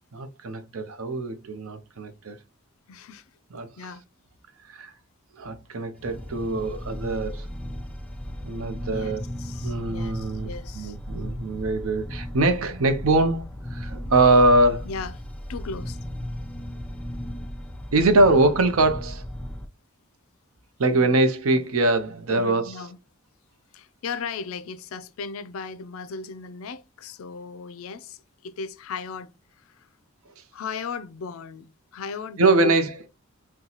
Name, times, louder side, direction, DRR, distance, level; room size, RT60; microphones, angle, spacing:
voice 1, 0.1-2.4 3.5-3.7 4.7-4.9 5.4-7.5 8.4-9.2 9.6-13.4 13.7-14.9 17.9-19.2 20.8-22.8 32.4-32.9, right 2 dB, 75° right, 0.6 m, -22 dB
voice 2, 2.9-3.2 3.8-4.0 8.9-11.0 14.8-15.1 15.5-16.0 20.9-21.1 21.5-21.7 22.3-23.0 23.7-29.9 30.5-32.8, left 4 dB, 70° left, 0.4 m, -36 dB
sound 1, 6.0-19.7, equal, 5° left, 0.4 m, -35 dB
3.9 x 2.2 x 2.9 m
head